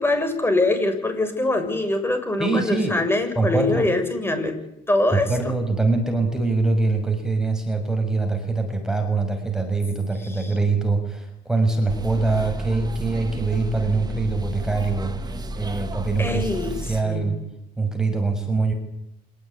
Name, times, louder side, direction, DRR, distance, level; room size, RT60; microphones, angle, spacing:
voice 1, 0.0-4.6 4.9-5.3 10.2-10.5 16.2-16.7 17.0-17.3, left 2 dB, 15° left, 8 dB, 6.8 m, -23 dB
voice 2, 2.4-2.9 3.3-3.9 5.1-15.1 15.5-16.4 16.7-17.4 17.8-18.7, right 3 dB, 5° right, 4 dB, 6.3 m, -23 dB
sound 1, 11.9-17.0, right 1 dB, 25° right, 2.2 m, -32 dB
26.5 x 19.0 x 10.0 m, 0.83 s
cardioid pair, 110°, 17 cm